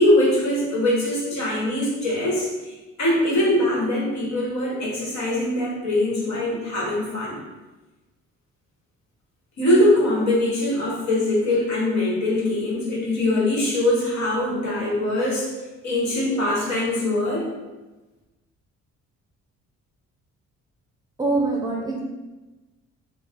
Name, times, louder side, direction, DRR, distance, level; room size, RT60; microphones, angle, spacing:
voice 1, 0.0-7.4 9.6-15.5 15.8-17.5, left 1 dB, 65° left, -4 dB, 1.2 m, -22 dB
voice 2, 21.2-22.0, right 3 dB, 15° right, -3 dB, 0.6 m, -24 dB
3.1 x 2.0 x 3.5 m, 1.1 s
cardioid pair, 90°, 30 cm